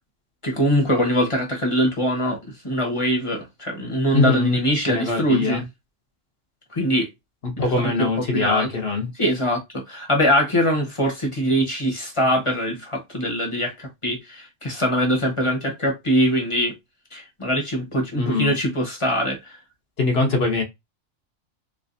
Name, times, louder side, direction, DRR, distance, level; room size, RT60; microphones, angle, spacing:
voice 1, 0.4-2.4 2.6-5.6 6.7-7.1 7.6-8.7 9.1-16.7 17.1-19.6, equal, 25° left, 0.9 m, -23 dB
voice 2, 4.1-4.6 4.9-5.6 7.4-9.1 18.2-18.5 20.0-20.6, left 3 dB, 55° left, 1.1 m, -22 dB
3.3 x 3.2 x 2.6 m
omnidirectional pair, 1.3 m